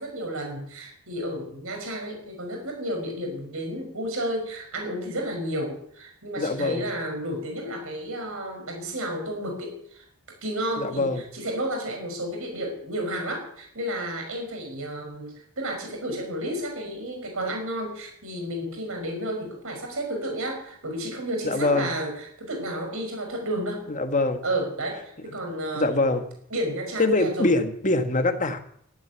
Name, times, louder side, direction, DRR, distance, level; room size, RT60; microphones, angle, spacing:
voice 1, 0.0-10.1 10.4-23.8 24.4-26.2 26.5-27.5, right 1 dB, 65° right, 2 dB, 5.8 m, -32 dB
voice 2, 6.4-6.8 10.8-11.2 21.4-21.9 23.9-24.4 25.7-26.2 27.0-28.6, left 2 dB, 35° left, 7 dB, 1.6 m, -23 dB
13.0 x 12.0 x 9.4 m, 0.68 s
head